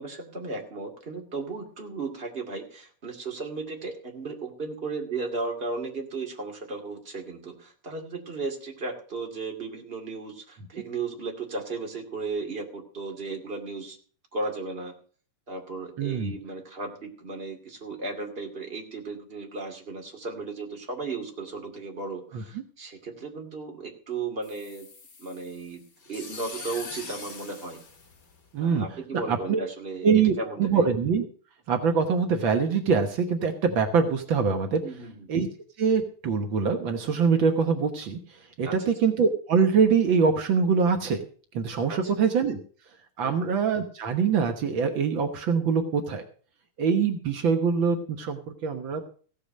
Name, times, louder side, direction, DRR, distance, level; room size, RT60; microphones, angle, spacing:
voice 1, 0.0-14.0 14.3-14.9 15.5-24.9 25.2-25.8 26.1-27.8 28.6-30.1 30.4-30.9 34.8-35.3 38.6-38.9 41.9-42.1 43.2-43.4, right 3 dB, 20° right, 2 dB, 1.9 m, -35 dB
voice 2, 16.0-16.3 22.3-22.4 28.5-28.8 29.3-29.6 30.0-31.3 31.7-34.8 35.3-35.5 35.8-38.2 38.6-41.2 41.5-42.6 43.2-46.2 46.8-49.0, right 6 dB, 90° right, 6 dB, 1.0 m, -24 dB
sound 1, 24.4-28.8, left 4 dB, 35° left, 2.2 m, -43 dB
16.0 x 6.8 x 6.5 m, 0.43 s
omnidirectional pair, 4.0 m